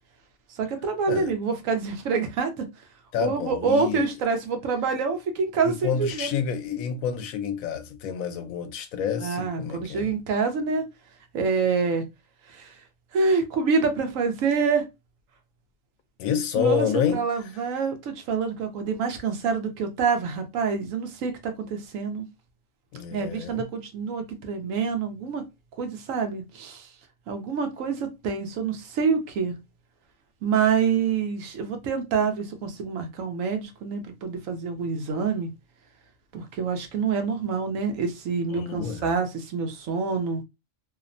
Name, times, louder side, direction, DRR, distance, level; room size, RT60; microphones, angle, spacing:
voice 1, 0.5-2.7 3.2-6.3 9.2-10.8 11.3-12.0 12.5-12.8 13.1-14.8 16.6-22.3 23.1-25.4 25.8-26.9 27.3-29.5 30.4-35.5 36.3-40.4, right 5 dB, 80° right, 1.0 m, -26 dB
voice 2, 3.1-4.1 5.6-10.1 16.2-17.2 22.9-23.6 38.5-39.1, left 7 dB, 80° left, 1.0 m, -28 dB
2.8 x 2.0 x 2.5 m
omnidirectional pair, 1.4 m